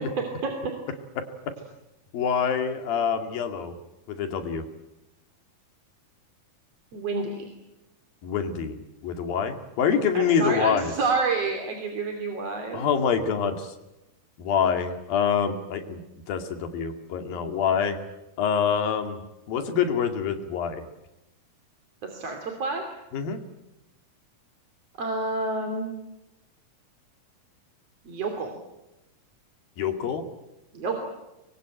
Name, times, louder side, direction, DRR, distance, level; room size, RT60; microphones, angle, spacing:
voice 1, 2.1-3.7 4.1-4.6 8.2-8.8 9.0-10.9 12.7-13.7 14.4-16.0 16.3-18.0 18.4-19.2 19.5-20.8 23.1-23.4 29.8-30.2, left 7 dB, 85° left, 6 dB, 4.1 m, -25 dB
voice 2, 6.9-7.5 10.1-12.9 22.0-22.8 25.0-26.0 28.0-28.6 30.7-31.1, right 3 dB, 45° right, 3 dB, 3.7 m, -29 dB
25.5 x 22.0 x 9.0 m, 0.96 s
omnidirectional pair, 4.0 m